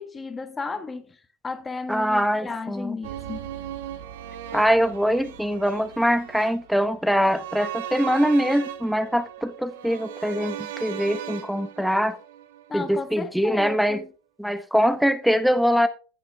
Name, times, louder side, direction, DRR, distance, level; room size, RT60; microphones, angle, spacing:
voice 1, 0.0-3.5 12.7-14.1, left 4 dB, 15° left, 1.6 m, -34 dB
voice 2, 1.9-3.0 4.5-12.2 12.7-14.0 14.4-15.9, equal, ahead, 1.2 m, -23 dB
sound 1, 3.0-13.2 13.5-13.6, right 11 dB, 85° right, 1.5 m, -38 dB
15.0 x 8.4 x 3.5 m
supercardioid pair, 115°, 0 cm